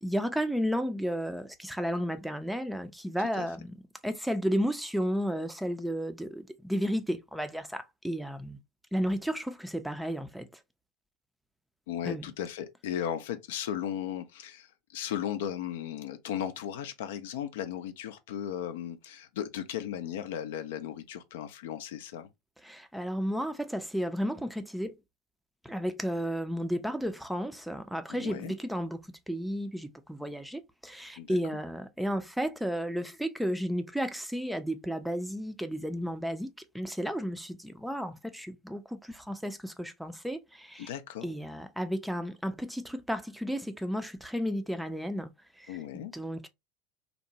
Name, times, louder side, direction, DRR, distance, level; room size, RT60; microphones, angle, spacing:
voice 1, 0.0-3.8 4.0-8.6 8.9-10.5 12.0-12.2 22.6-24.9 25.6-29.0 29.3-40.9 41.2-45.3 45.6-46.5, equal, ahead, 0.4 m, -33 dB
voice 2, 11.9-14.7 14.9-22.3 28.1-28.5 31.2-31.4 40.8-41.3 45.7-46.1, left 10 dB, 70° left, 0.4 m, -36 dB
2.9 x 2.1 x 2.6 m
hypercardioid pair, 80°, 0 cm